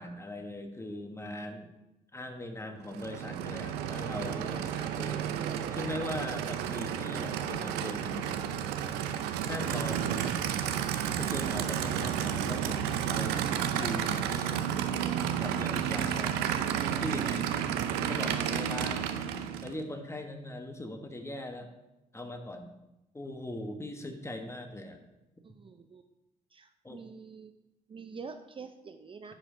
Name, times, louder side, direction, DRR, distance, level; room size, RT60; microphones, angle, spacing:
voice 1, 0.0-1.7 2.1-5.3 5.7-8.3 9.4-10.4 11.1-14.6 15.4-16.4 16.9-17.7 18.0-19.1 19.6-21.7 22.1-22.7 23.1-25.1 26.8-27.0, left 1 dB, 15° left, 5 dB, 1.2 m, -40 dB
Aircraft / Idling, 2.8-19.8, right 9 dB, 85° right, 0.5 m, -31 dB
voice 2, 17.1-17.4 25.4-26.0 26.5-27.5 27.9-29.3, right 5 dB, 35° right, 8 dB, 0.5 m, -46 dB
10.0 x 5.1 x 3.8 m, 0.96 s
supercardioid pair, 70°, 16 cm